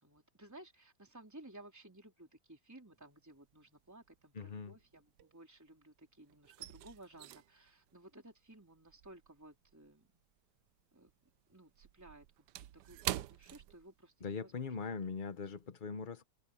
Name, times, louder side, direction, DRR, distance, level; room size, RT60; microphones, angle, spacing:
voice 1, 0.0-10.1 10.9-11.1 11.5-12.3 12.5-15.0, right 1 dB, 10° right, 3.6 m, -57 dB
sound 1, 3.0-3.6 3.9-5.9 6.1-10.8 11.1-14.4 14.7-14.9 15.4-15.6, right 14 dB, 75° right, 1.2 m, -46 dB
voice 2, 4.3-4.7 14.2-16.2, left 5 dB, 45° left, 0.7 m, -41 dB
omnidirectional pair, 1.9 m